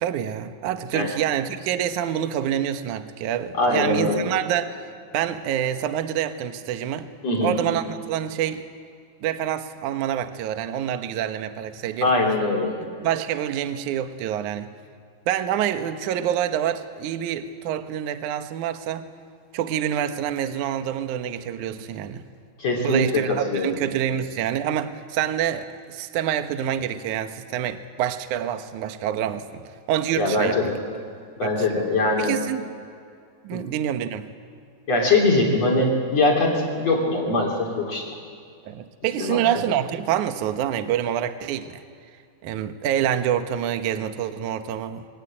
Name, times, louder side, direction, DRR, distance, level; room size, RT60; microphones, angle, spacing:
voice 1, 0.0-4.7 5.1-7.1 7.4-8.7 9.2-12.1 13.0-14.7 15.3-19.1 19.5-22.2 22.8-30.7 31.4-31.8 32.2-32.7 33.4-34.3 38.6-41.8 42.4-45.1, right 10 dB, 75° right, 8 dB, 1.8 m, -27 dB
voice 2, 3.5-4.2 7.2-7.5 12.0-12.8 22.6-23.1 23.5-23.7 30.2-30.8 31.4-32.3 33.5-33.7 34.9-38.0 39.2-39.4, left 2 dB, 40° left, -1 dB, 4.1 m, -22 dB
24.5 x 23.5 x 8.8 m, 2.3 s
omnidirectional pair, 5.1 m